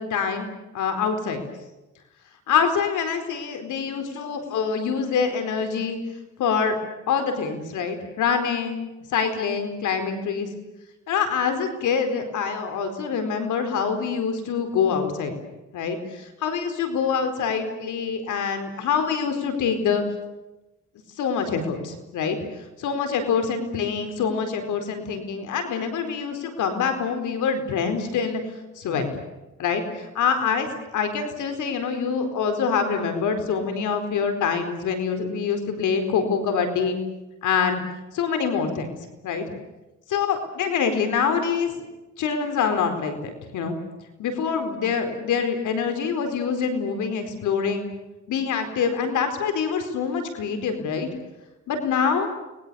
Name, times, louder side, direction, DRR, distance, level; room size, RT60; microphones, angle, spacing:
voice 1, 0.1-0.5 0.7-1.4 2.5-6.0 6.4-6.8 7.1-10.5 11.1-15.3 15.7-20.0 21.2-22.4 22.8-28.4 28.8-29.1 29.6-30.7 30.9-37.0 37.4-37.8 38.1-38.9 39.2-39.4 40.1-41.7 42.2-43.8 44.2-47.9 48.3-51.1 51.7-52.3, left 6 dB, 80° left, 7 dB, 4.4 m, -25 dB
30.0 x 21.5 x 7.0 m, 1.0 s
cardioid pair, 90°, 30 cm